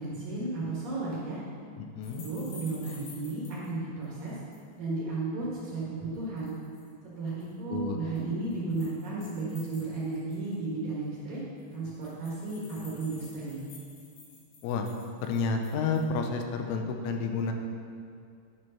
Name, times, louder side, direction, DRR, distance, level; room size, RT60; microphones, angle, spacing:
voice 1, 0.0-1.4 2.0-4.4 4.8-6.5 7.2-11.4 11.7-13.6, right 3 dB, 60° right, -6 dB, 2.6 m, -34 dB
voice 2, 1.8-2.2 7.7-8.0 14.6-14.9 15.2-17.5, left 4 dB, 85° left, 4 dB, 3.3 m, -30 dB
sound 1, 2.0-3.7 4.0-4.7 6.2-6.9 7.3-7.5 8.2-10.7 11.0-11.1 11.3-11.4 11.6-16.2, left 3 dB, 60° left, 3.6 m, -52 dB
10.5 x 6.4 x 5.6 m, 2.4 s
omnidirectional pair, 5.6 m